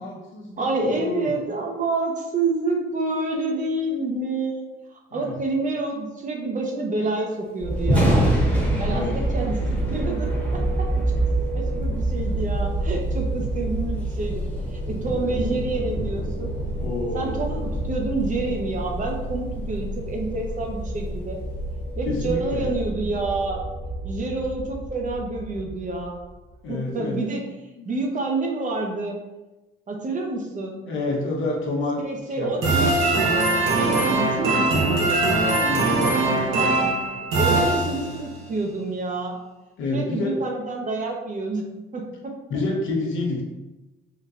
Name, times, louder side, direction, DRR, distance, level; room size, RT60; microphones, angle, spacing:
voice 1, 0.0-1.4 5.1-5.4 8.9-9.2 16.8-17.7 22.0-22.7 26.6-27.2 27.7-27.9 30.8-32.0 32.3-32.8 35.7-36.2 39.8-40.4 42.5-43.4, left 2 dB, 80° left, -1 dB, 0.8 m, -29 dB
voice 2, 0.6-4.7 5.1-8.3 8.8-11.0 11.5-14.4 14.7-16.5 17.1-21.4 22.0-23.6 24.0-26.2 26.7-27.4 27.8-29.2 29.9-30.8 32.0-33.0 33.7-35.2 35.6-36.8 37.3-39.4 39.9-41.7 41.9-42.3, right 3 dB, 40° right, 1 dB, 0.7 m, -28 dB
sound 1, 7.6-26.5, right 1 dB, 30° left, 0.8 m, -28 dB
Thunder, 7.7-21.9, equal, 5° left, 1.1 m, -30 dB
Success Resolution Video Game Fanfare Sound Effect, 32.6-38.3, right 2 dB, 80° right, 0.8 m, -21 dB
3.7 x 2.7 x 2.4 m, 1.1 s
cardioid pair, 90°, 20 cm